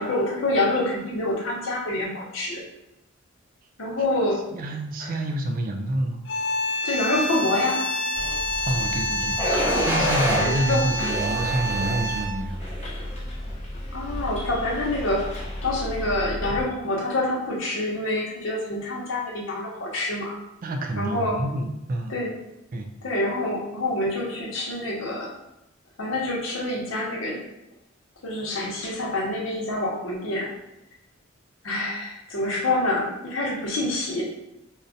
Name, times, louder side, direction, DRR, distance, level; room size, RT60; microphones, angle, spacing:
voice 1, 0.0-2.6 3.8-4.5 5.0-5.1 6.8-7.8 10.4-10.9 13.9-15.3 15.6-20.3 21.0-21.4 22.1-22.4 23.0-25.3 26.0-27.4 28.2-30.5 31.6-34.2, left 1 dB, 85° left, -3 dB, 0.8 m, -26 dB
voice 2, 4.5-6.2 8.6-9.4 9.8-12.6 20.6-22.1 22.7-22.9, right 1 dB, 45° right, 4 dB, 0.4 m, -28 dB
sound 1, 6.3-12.5, left 1 dB, 60° left, 0.4 m, -28 dB
Bus, 8.1-16.6, left 1 dB, 35° left, 0.8 m, -34 dB
sound 2, 9.4-10.4 11.0-12.0 12.6-13.0, equal, 10° right, 0.9 m, -26 dB
3.8 x 2.1 x 2.6 m, 0.89 s
head